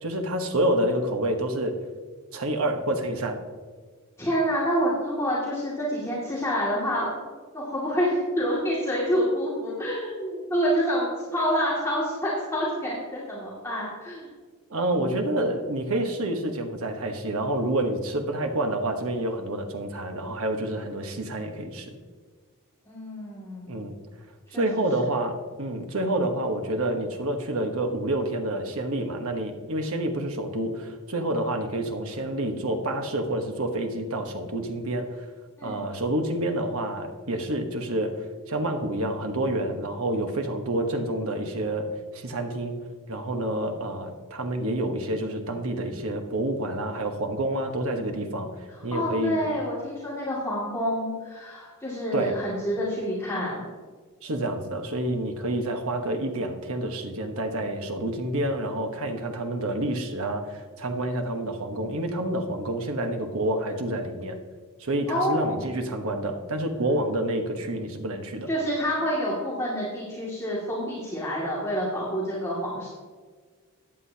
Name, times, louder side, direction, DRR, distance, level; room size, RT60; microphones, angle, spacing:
voice 1, 0.0-1.8 2.3-3.4 14.7-22.0 23.7-24.0 24.5-35.3 35.6-49.4 52.1-52.4 54.2-64.4 64.8-68.5, right 1 dB, 65° right, 4 dB, 1.2 m, -28 dB
voice 2, 4.2-7.1 7.5-14.3 22.9-23.8 24.5-24.6 35.6-35.8 48.9-53.6 65.1-65.6 68.5-72.9, equal, 15° left, -8 dB, 2.2 m, -27 dB
14.5 x 9.7 x 2.8 m, 1.5 s
head